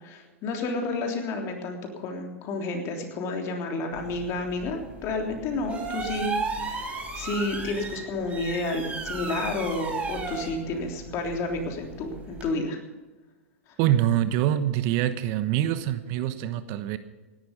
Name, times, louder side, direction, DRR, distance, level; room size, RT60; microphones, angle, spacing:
voice 1, 0.0-6.4 6.6-12.8, left 2 dB, 40° left, 3 dB, 3.3 m, -30 dB
sound 1, 3.9-12.5, right 3 dB, 15° right, 3.7 m, -35 dB
voice 2, 13.8-17.0, right 12 dB, 50° right, 12 dB, 1.1 m, -25 dB
17.0 x 11.5 x 5.3 m, 1.2 s
hypercardioid pair, 110°, 7 cm